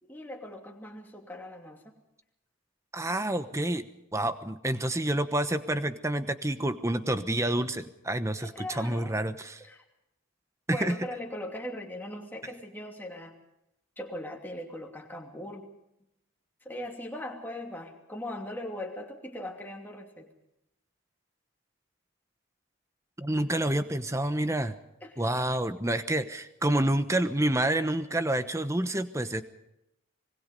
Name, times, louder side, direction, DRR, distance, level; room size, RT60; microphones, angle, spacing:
voice 1, 0.0-2.0 8.4-9.1 9.6-9.8 10.7-13.3 14.0-15.7 16.6-20.3 25.0-25.3, left 1 dB, 10° left, 0 dB, 2.7 m, -40 dB
voice 2, 2.9-3.9 4.1-9.6 10.7-10.9 23.2-24.7 25.2-29.4, right 1 dB, 15° right, 10 dB, 1.1 m, -28 dB
25.5 x 21.0 x 5.4 m, 0.85 s
head